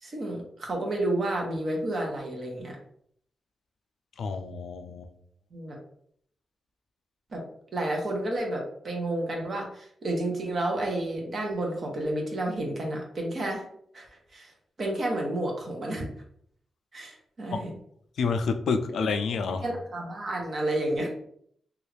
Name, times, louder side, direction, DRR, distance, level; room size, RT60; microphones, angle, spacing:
voice 1, 0.0-2.8 5.5-5.8 7.3-7.4 7.7-13.7 13.9-14.5 14.8-16.1 16.9-17.7 19.6-21.1, right 1 dB, 45° right, 0 dB, 0.9 m, -31 dB
voice 2, 4.2-5.1 17.5-17.6 18.2-19.7, left 5 dB, 80° left, 7 dB, 0.3 m, -28 dB
3.1 x 2.4 x 3.3 m, 0.66 s
wide cardioid pair, 150°, 0 cm